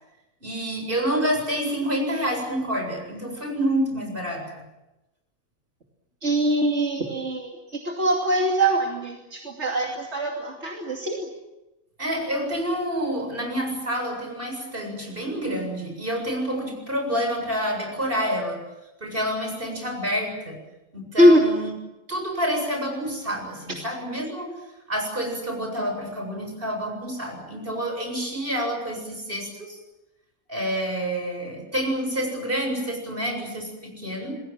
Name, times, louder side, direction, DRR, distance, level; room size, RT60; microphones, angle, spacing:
voice 1, 0.4-4.6 12.0-18.6 19.0-20.6 20.9-21.7 22.1-24.6 24.9-29.8 30.5-34.4, equal, 50° right, 3 dB, 8.1 m, -28 dB
voice 2, 6.2-11.3 21.2-21.4, equal, 80° right, 0 dB, 3.0 m, -22 dB
28.5 x 21.0 x 7.5 m, 0.98 s
omnidirectional pair, 1.2 m